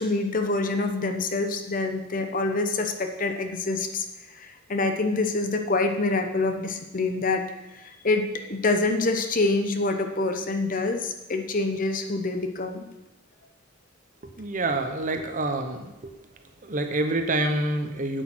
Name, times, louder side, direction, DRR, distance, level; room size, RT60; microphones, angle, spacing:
voice 1, 0.0-7.4 7.7-12.9, left 3 dB, 40° left, 6 dB, 1.0 m, -26 dB
voice 2, 14.2-16.1 16.6-18.2, right 2 dB, 40° right, 6 dB, 1.0 m, -27 dB
8.3 x 8.2 x 6.3 m, 0.99 s
head